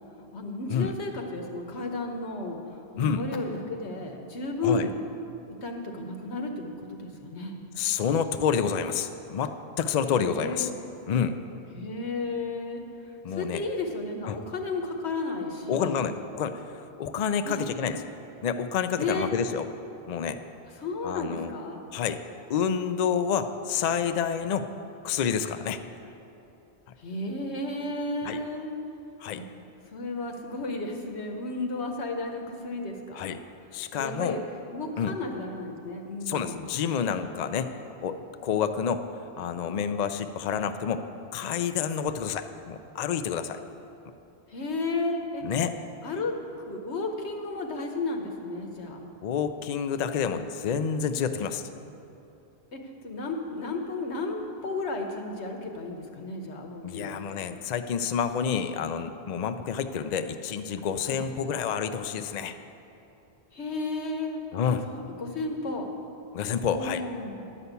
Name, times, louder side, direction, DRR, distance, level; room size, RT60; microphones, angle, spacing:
voice 1, 0.3-2.6 2.9-4.9 5.6-6.7 7.0-7.6 10.1-10.7 11.7-12.8 13.3-16.1 17.4-17.6 19.0-19.3 20.8-21.8 27.0-28.7 29.3-29.4 29.9-33.3 33.9-34.4 34.7-36.7 44.5-45.4 46.0-46.4 46.7-49.0 52.7-52.8 53.0-57.4 61.1-61.3 63.5-64.4 64.9-65.9 66.7-67.5, left 2 dB, 85° left, 3 dB, 1.4 m, -33 dB
voice 2, 7.8-10.7 11.1-11.4 13.2-13.6 14.3-14.4 15.7-18.0 18.4-19.7 20.1-20.4 21.0-21.5 21.9-22.2 22.5-24.7 25.0-25.9 28.2-28.4 29.2-29.4 33.1-33.4 33.7-34.4 35.0-35.1 36.3-37.7 38.0-38.2 38.4-39.1 39.4-41.1 41.3-43.6 45.4-45.7 49.2-51.6 56.8-62.6 64.5-64.9 66.3-67.0, left 7 dB, 55° left, 9 dB, 0.5 m, -28 dB
11.0 x 5.6 x 8.1 m, 2.8 s
omnidirectional pair, 1.1 m